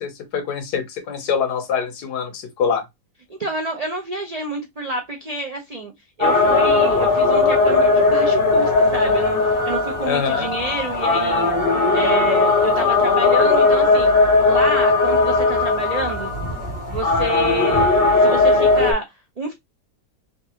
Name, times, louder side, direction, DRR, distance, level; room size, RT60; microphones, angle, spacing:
voice 1, 0.0-2.8 10.1-10.5, left 7 dB, 80° left, 1.4 m, -24 dB
voice 2, 3.3-5.9 6.2-11.5 11.9-14.2 14.4-16.3 16.9-19.0 19.4-19.5, right 2 dB, 80° right, 0.3 m, -28 dB
sound 1, 6.2-18.9, left 3 dB, 40° left, 1.0 m, -18 dB
3.7 x 2.5 x 2.8 m
omnidirectional pair, 1.7 m